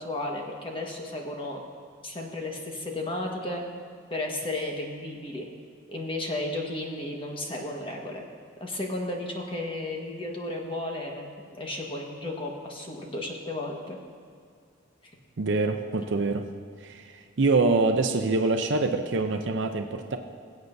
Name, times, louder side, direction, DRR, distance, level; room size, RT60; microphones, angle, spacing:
voice 1, 0.0-1.6 2.0-3.6 4.1-5.5 5.9-8.2 8.6-14.0, left 1 dB, 25° left, 0 dB, 1.4 m, -33 dB
voice 2, 15.4-16.5 16.8-20.2, right 3 dB, 65° right, 6 dB, 0.6 m, -25 dB
22.0 x 8.1 x 2.7 m, 2.2 s
head